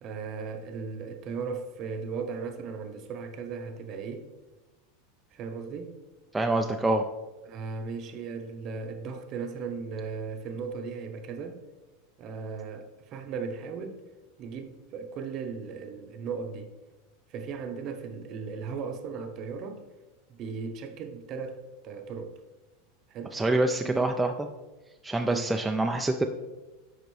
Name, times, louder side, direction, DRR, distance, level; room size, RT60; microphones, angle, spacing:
voice 1, 0.0-4.3 5.3-5.9 7.4-11.6 12.2-14.0 14.4-16.7 17.3-19.9 20.3-22.3 23.1-23.4 23.8-24.1 25.2-25.5, right 5 dB, 40° right, 0.7 m, -37 dB
voice 2, 6.3-7.1 23.3-24.5 25.0-26.3, right 2 dB, 10° right, 0.3 m, -26 dB
10.5 x 3.9 x 3.1 m
supercardioid pair, 140°, 0 cm